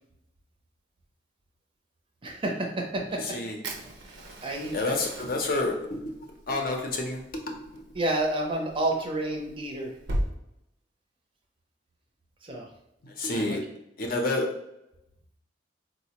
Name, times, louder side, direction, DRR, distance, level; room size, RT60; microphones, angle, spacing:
voice 1, 2.2-3.2 4.1-4.8 8.0-10.0 12.4-12.7 13.3-13.6, right 2 dB, 30° right, 1 dB, 0.5 m, -30 dB
voice 2, 3.2-3.6 4.7-7.8 13.0-13.6 14.0-14.5, left 2 dB, 50° left, 1 dB, 0.6 m, -29 dB
Fire, 3.6-10.3, right 1 dB, 85° right, 0.5 m, -38 dB
4.1 x 2.1 x 2.8 m, 0.84 s
head